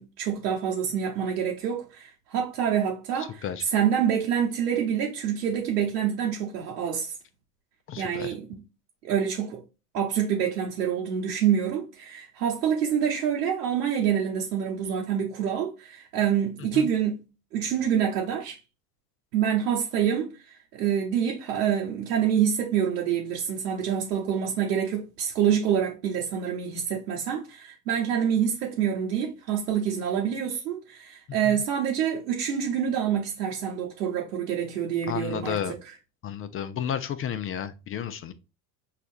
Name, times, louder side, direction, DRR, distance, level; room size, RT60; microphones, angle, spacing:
voice 1, 0.0-7.1 8.0-8.5 9.0-9.6 9.9-17.2 17.5-18.6 19.3-36.0, right 8 dB, 85° right, 0.9 m, -27 dB
voice 2, 7.9-8.3 16.7-16.8 31.4-31.6 35.1-35.7 36.2-38.3, left 8 dB, 30° left, 0.5 m, -32 dB
6.5 x 2.5 x 2.5 m
hypercardioid pair, 85°, 47 cm